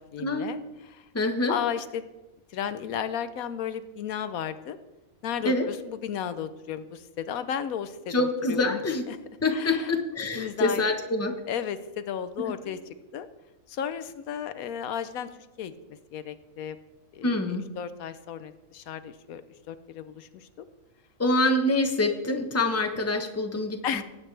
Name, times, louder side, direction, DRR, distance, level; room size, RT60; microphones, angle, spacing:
voice 1, 0.1-1.0 1.5-2.1 2.5-4.8 5.2-8.8 9.1-9.2 9.5-9.9 10.4-10.9 11.5-12.8 13.1-13.3 13.7-15.3 15.6-15.8 16.1-16.8 17.1-17.4 17.8-19.4 19.7-20.6 23.8-24.0, left 8 dB, 80° left, 12 dB, 1.1 m, -34 dB
voice 2, 1.1-1.5 5.4-5.7 8.1-9.0 9.4-11.3 12.6-12.7 17.2-17.7 21.2-24.0, left 2 dB, 10° left, 4 dB, 1.0 m, -26 dB
18.5 x 8.9 x 3.3 m, 1.1 s
omnidirectional pair, 1.5 m